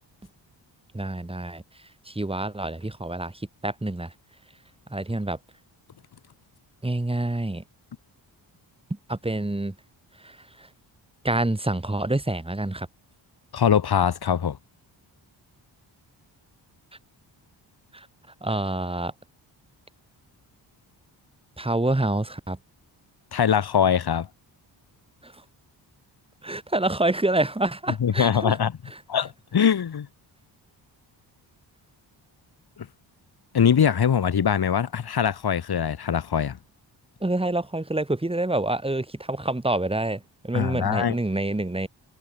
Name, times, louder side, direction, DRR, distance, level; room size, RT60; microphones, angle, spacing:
voice 1, 0.9-1.6 2.1-4.1 4.9-5.4 6.8-7.6 9.1-9.7 10.2-10.7 11.2-12.9 17.9-18.1 18.4-19.1 21.6-22.6 25.2-25.3 26.4-28.6 37.2-41.9, right 2 dB, 10° right, 2.7 m, -27 dB
voice 2, 13.5-14.6 23.3-24.3 28.0-28.7 29.1-30.1 32.8-32.9 33.5-36.6 40.5-41.2, left 8 dB, 55° left, 2.4 m, -22 dB
cardioid pair, 90°, 45 cm